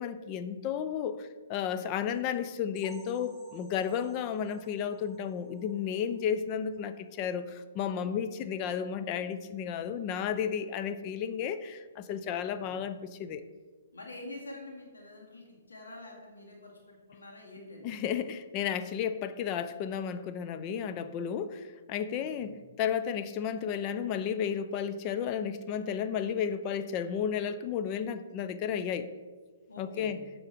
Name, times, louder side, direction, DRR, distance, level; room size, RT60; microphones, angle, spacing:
voice 1, 0.0-13.4 17.8-29.1 29.8-30.2, left 8 dB, 35° left, 11 dB, 0.4 m, -33 dB
sound 1, 2.7-6.4 6.8-6.9 7.3-7.4 7.9-8.0, right 2 dB, 5° left, 1.0 m, -57 dB
voice 2, 13.9-17.9 22.1-22.5 29.7-30.2, left 2 dB, 85° left, -2 dB, 2.1 m, -47 dB
8.5 x 3.7 x 4.6 m, 1.4 s
hypercardioid pair, 135°, 0 cm